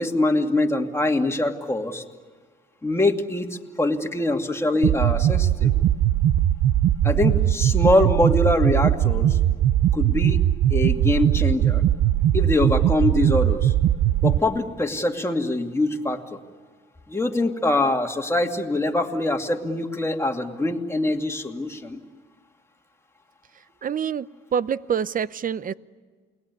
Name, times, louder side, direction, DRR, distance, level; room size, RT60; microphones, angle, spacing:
voice 1, 0.0-2.0 2.8-5.7 7.0-9.4 9.9-10.4 10.7-11.8 12.3-13.7 14.2-16.4 17.1-22.0, left 2 dB, 15° left, 3 dB, 2.5 m, -23 dB
sound 1, 4.8-14.4, right 11 dB, 75° right, 0.8 m, -20 dB
voice 2, 23.8-24.3 24.5-25.7, right 8 dB, 45° right, 17 dB, 0.8 m, -26 dB
29.0 x 20.0 x 9.7 m, 1.5 s
cardioid pair, 90°, 20 cm